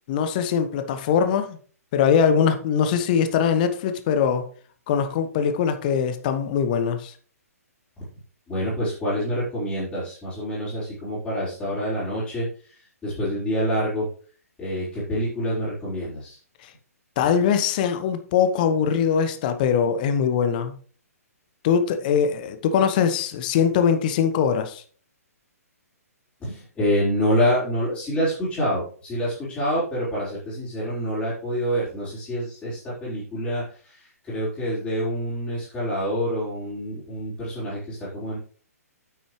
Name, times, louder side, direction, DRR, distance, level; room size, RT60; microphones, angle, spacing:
voice 1, 0.1-1.6 1.9-4.4 4.9-7.1 17.2-20.7 21.6-24.8, left 7 dB, 30° left, 8 dB, 1.1 m, -22 dB
voice 2, 8.5-12.7 13.0-14.1 14.6-16.4 26.4-38.4, equal, 10° left, -13 dB, 4.7 m, -27 dB
9.4 x 8.4 x 3.2 m, 0.44 s
figure-of-eight pair, 125°, 9 cm